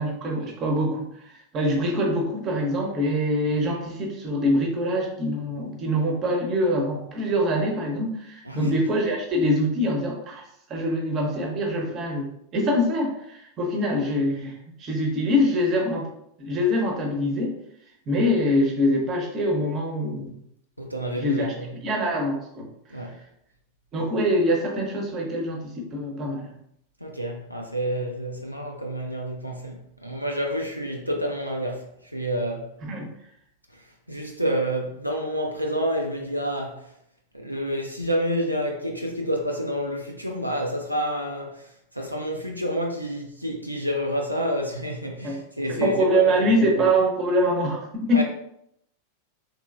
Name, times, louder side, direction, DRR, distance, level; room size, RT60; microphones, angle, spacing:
voice 1, 0.0-10.4 10.7-16.1 16.4-17.6 18.1-20.4 21.2-21.5 21.8-22.7 23.9-26.5 32.8-33.1 45.2-45.3 45.7-48.2, equal, 30° right, 0.7 m, -24 dB
voice 2, 20.8-21.7 22.9-23.2 27.0-32.8 33.7-36.9 37.3-46.5 48.1-48.2, equal, 90° right, 0.3 m, -29 dB
3.0 x 2.9 x 2.3 m
figure-of-eight pair, 90°, 0 cm